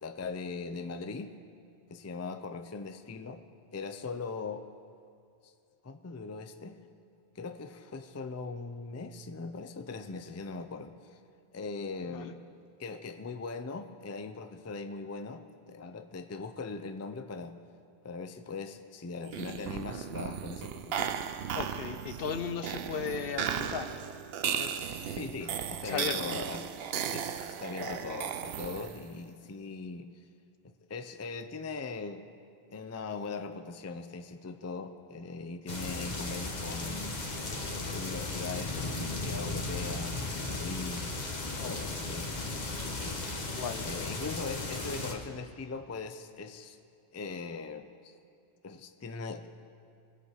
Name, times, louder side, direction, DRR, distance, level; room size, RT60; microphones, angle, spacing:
voice 1, 0.0-1.3 1.9-3.4 3.7-4.6 5.4-5.5 5.8-6.8 7.4-11.2 11.5-12.4 12.8-17.5 18.0-21.4 25.1-26.6 27.1-30.1 30.6-32.2 32.7-37.2 37.5-42.3 42.8-43.1 43.8-46.8 47.1-48.1 48.6-49.5, left 4 dB, 25° left, 8 dB, 0.3 m, -40 dB
sound 1, 19.2-29.1, right 8 dB, 75° right, 0.8 m, -36 dB
voice 2, 21.5-24.0 24.6-25.2 25.8-26.4 27.7-28.2 41.6-42.0 43.5-44.1, left 6 dB, 70° left, 10 dB, 0.9 m, -37 dB
sound 2, 35.7-45.1, left 2 dB, 45° left, 1.3 m, -36 dB
20.5 x 7.9 x 4.9 m, 2.4 s
omnidirectional pair, 1.1 m